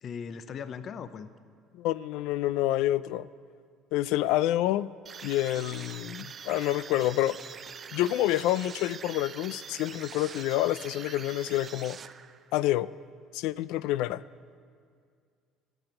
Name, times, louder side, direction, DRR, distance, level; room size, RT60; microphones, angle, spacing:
voice 1, 0.0-1.3, left 6 dB, 45° left, 12 dB, 0.6 m, -38 dB
voice 2, 1.7-3.3 3.9-4.9 5.2-7.4 7.9-12.0 12.5-12.9 13.3-14.2, left 14 dB, 75° left, 18 dB, 0.3 m, -28 dB
sound 1, 5.1-12.6, right 6 dB, 35° right, 0.5 m, -44 dB
15.5 x 6.0 x 9.7 m, 2.1 s
cardioid pair, 120°, 0 cm